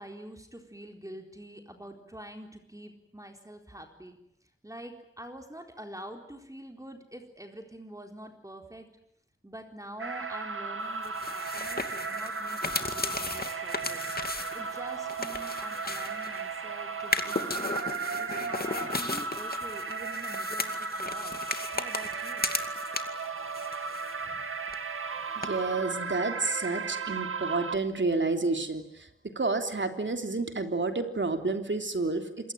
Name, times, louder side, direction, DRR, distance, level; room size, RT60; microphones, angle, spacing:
voice 1, 0.0-4.2 4.6-8.9 9.4-14.0 14.5-17.7 18.2-21.4 21.7-22.5, right 1 dB, 15° right, 4 dB, 4.1 m, -46 dB
sound 1, 10.0-27.8, right 4 dB, 85° right, 1.9 m, -35 dB
sound 2, 11.0-16.5 17.0-23.3 23.5-24.4 24.7-24.8 25.4-25.5, left 3 dB, 45° left, 2.4 m, -35 dB
voice 2, 25.4-28.8 29.3-32.3, right 3 dB, 60° right, 6 dB, 3.4 m, -29 dB
27.0 x 22.5 x 9.2 m, 0.75 s
wide cardioid pair, 65°, 21 cm